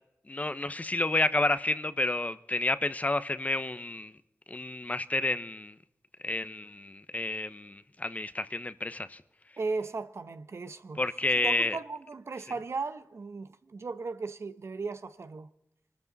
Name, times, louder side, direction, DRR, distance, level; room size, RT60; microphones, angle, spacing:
voice 1, 0.3-4.1 4.5-5.7 6.2-9.2 11.0-11.8, left 2 dB, 30° left, 0.8 m, -30 dB
voice 2, 9.6-11.0 11.4-15.5, right 4 dB, 65° right, 0.9 m, -36 dB
25.0 x 13.0 x 4.0 m
wide cardioid pair, 70°, 5 cm